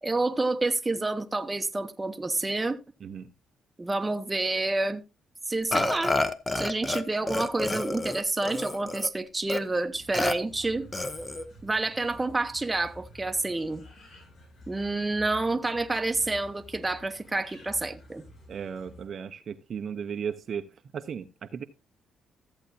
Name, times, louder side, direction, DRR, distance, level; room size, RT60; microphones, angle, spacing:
voice 1, 0.0-2.8 3.8-5.0 5.5-6.2 6.6-10.9 11.6-13.8 14.7-18.2, right 2 dB, 15° right, 0.9 m, -28 dB
voice 2, 3.0-3.3 18.5-20.7 20.9-21.6, right 7 dB, 55° right, 0.8 m, -35 dB
Burping eructation, 5.7-7.0 7.3-9.1 9.5-9.6 10.1-10.3 10.9-11.5, left 2 dB, 20° left, 0.9 m, -29 dB
sound 1, 9.9-19.0, equal, 65° left, 7.1 m, -51 dB
14.0 x 8.0 x 2.8 m
cardioid pair, 90°, 0 cm